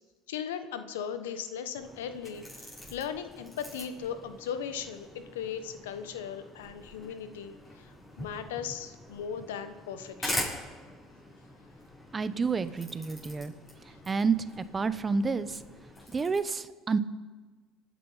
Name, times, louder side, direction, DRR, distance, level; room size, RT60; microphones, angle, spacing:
voice 1, 0.3-7.9 8.2-10.4, left 8 dB, 90° left, 10 dB, 1.1 m, -38 dB
sound 1, 1.8-16.4, left 1 dB, 15° left, 7.1 m, -43 dB
voice 2, 12.1-13.5 14.1-15.6 16.1-17.0, right 4 dB, 30° right, 14 dB, 1.0 m, -29 dB
26.5 x 9.5 x 5.7 m, 1.3 s
hypercardioid pair, 75°, 0 cm